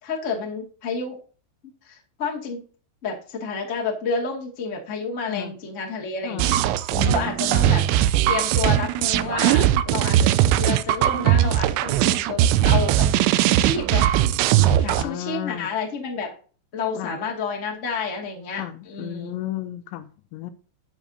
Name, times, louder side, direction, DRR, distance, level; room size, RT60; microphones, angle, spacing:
voice 1, 0.0-1.2 1.8-2.6 3.0-6.6 7.0-7.8 8.3-13.1 13.4-14.1 14.8-16.3 16.7-19.3, left 4 dB, 45° left, -1 dB, 0.9 m, -30 dB
sound 1, 6.4-15.0, right 12 dB, 85° right, 2.9 m, -19 dB
voice 2, 6.9-7.9 14.6-15.7 16.9-17.2 18.6-20.5, left 13 dB, 80° left, 10 dB, 2.9 m, -33 dB
12.0 x 8.3 x 2.8 m, 0.39 s
omnidirectional pair, 5.4 m